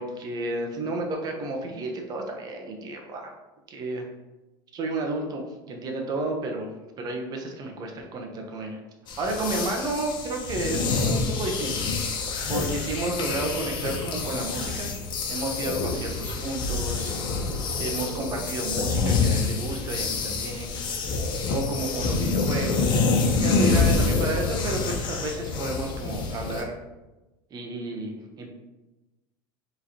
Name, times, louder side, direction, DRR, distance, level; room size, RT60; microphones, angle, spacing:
voice 1, 0.0-3.3 3.7-4.1 4.7-6.7 7.0-8.8 9.2-11.9 12.5-14.9 15.3-17.2 17.8-20.7 21.5-23.1 23.4-26.8 27.5-28.5, right 2 dB, 35° right, 2 dB, 0.8 m, -31 dB
sound 1, 9.1-26.6, left 4 dB, 45° left, 0.7 m, -27 dB
4.7 x 3.2 x 2.9 m, 1.1 s
supercardioid pair, 130°, 11 cm